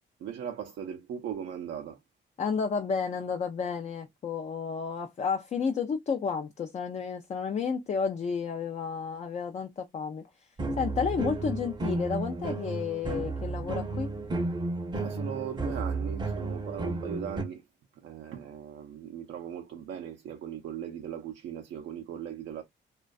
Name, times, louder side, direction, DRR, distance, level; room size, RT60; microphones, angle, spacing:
voice 1, 0.2-2.0 15.0-17.6 18.0-22.6, right 9 dB, 70° right, 0.5 m, -38 dB
voice 2, 2.4-10.5 10.8-14.1, left 6 dB, 35° left, 0.4 m, -31 dB
pan filmsilly, 10.6-17.4, right 3 dB, 25° right, 0.6 m, -33 dB
2.5 x 2.2 x 2.3 m
cardioid pair, 90°, 20 cm